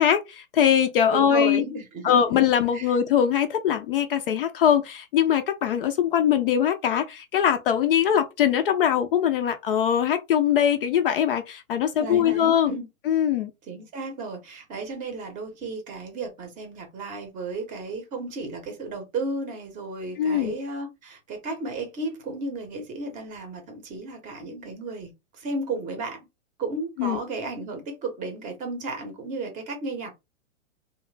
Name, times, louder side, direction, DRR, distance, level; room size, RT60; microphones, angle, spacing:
voice 1, 0.0-1.6 2.0-12.7 13.1-13.5 20.2-20.6 27.0-27.2, left 9 dB, 45° left, 0.4 m, -22 dB
voice 2, 1.1-2.4 2.7-3.0 12.0-12.9 13.7-25.1 25.4-26.2 26.6-30.1, right 3 dB, 20° right, 0.7 m, -34 dB
3.0 x 2.1 x 3.1 m
hypercardioid pair, 140°, 39 cm